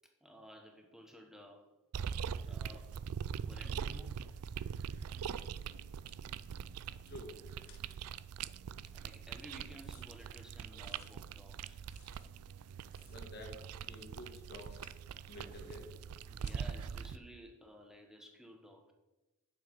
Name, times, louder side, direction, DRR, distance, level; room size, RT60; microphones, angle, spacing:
voice 1, 0.0-1.7 2.4-3.0 3.4-4.4 8.9-11.8 16.2-18.9, equal, ahead, 2 dB, 1.1 m, -55 dB
sound 1, 1.9-17.2, right 7 dB, 80° right, 0.4 m, -43 dB
sound 2, 5.8-6.2 7.6-7.9 9.8-10.1 10.7-11.1 11.8-12.3 12.6-12.7 12.9-13.4 14.8-15.1 16.4-16.6, left 9 dB, 70° left, 1.0 m, -63 dB
voice 2, 7.1-7.4 13.1-14.8 15.3-15.9, left 1 dB, 45° left, 2 dB, 2.0 m, -50 dB
8.8 x 6.5 x 5.2 m, 1.1 s
head